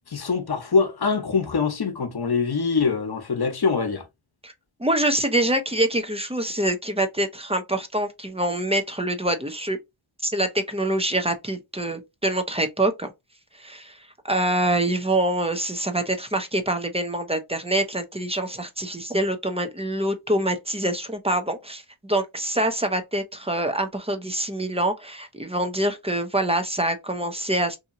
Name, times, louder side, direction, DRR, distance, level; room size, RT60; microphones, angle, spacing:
voice 1, 0.1-4.0, left 5 dB, 50° left, 0.9 m, -24 dB
voice 2, 4.8-9.8 10.2-13.1 13.6-14.0 14.2-27.8, right 1 dB, 15° right, 0.6 m, -25 dB
2.8 x 2.7 x 2.5 m
cardioid pair, 50°, 48 cm